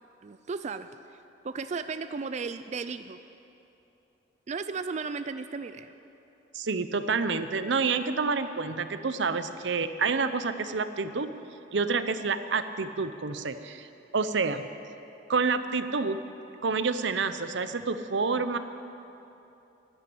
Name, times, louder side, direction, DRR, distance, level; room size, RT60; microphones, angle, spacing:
voice 1, 0.2-1.2 1.4-3.2 4.5-5.9, right 4 dB, 40° right, 11 dB, 0.4 m, -35 dB
voice 2, 6.5-11.3 11.7-13.9 14.1-14.6 15.3-16.2 16.6-18.6, right 4 dB, 75° right, 11 dB, 0.7 m, -28 dB
11.5 x 11.5 x 8.5 m, 2.9 s
head